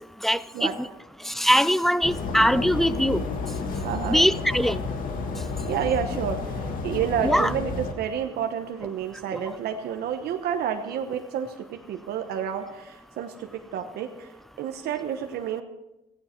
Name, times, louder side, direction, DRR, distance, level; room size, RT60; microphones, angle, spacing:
voice 1, 0.2-0.9 1.3-3.2 4.0-4.8 7.2-7.5, equal, ahead, 17 dB, 0.4 m, -22 dB
sound 1, 2.0-7.9, left 4 dB, 55° left, 2.1 m, -31 dB
voice 2, 3.8-4.2 5.6-14.3 14.6-15.6, right 8 dB, 70° right, 5 dB, 1.1 m, -30 dB
16.0 x 15.0 x 4.5 m, 0.99 s
cardioid pair, 110°, 17 cm